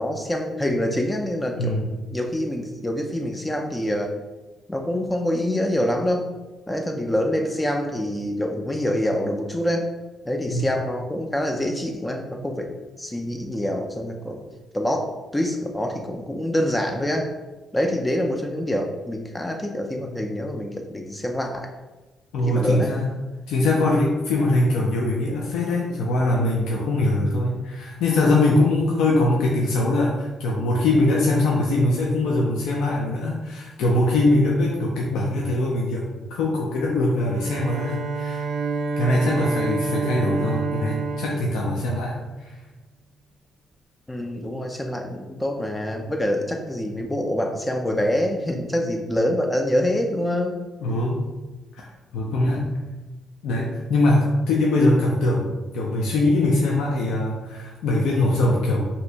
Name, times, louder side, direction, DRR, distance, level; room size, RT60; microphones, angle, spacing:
voice 1, 0.0-1.8 2.1-4.1 4.7-6.3 6.7-9.9 10.3-14.4 14.7-17.3 17.7-21.7 22.5-22.9 44.1-50.6, left 1 dB, 10° left, 3 dB, 0.3 m, -25 dB
voice 2, 1.5-1.9 10.5-10.9 22.3-23.1 23.5-38.4 39.0-42.6 50.8-51.3 51.7-51.8 52.1-52.9 53.4-58.9, left 2 dB, 85° left, -3 dB, 0.4 m, -22 dB
Bowed string instrument, 37.3-42.5, right 4 dB, 85° right, 0.3 m, -28 dB
2.8 x 2.5 x 3.3 m, 1.2 s
cardioid pair, 90°, 0 cm